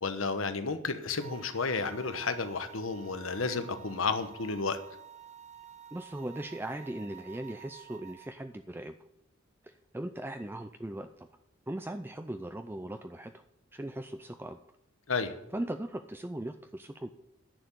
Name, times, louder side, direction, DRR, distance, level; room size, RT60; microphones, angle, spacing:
voice 1, 0.0-4.8 15.1-15.3, left 4 dB, 85° left, 10 dB, 1.1 m, -32 dB
sound 1, 1.1-8.3, right 9 dB, 35° right, 1.0 m, -51 dB
voice 2, 5.9-9.0 9.6-11.3 11.7-13.4 13.7-14.6 15.5-17.1, right 1 dB, 10° right, 8 dB, 0.5 m, -39 dB
10.5 x 6.9 x 9.1 m, 0.81 s
head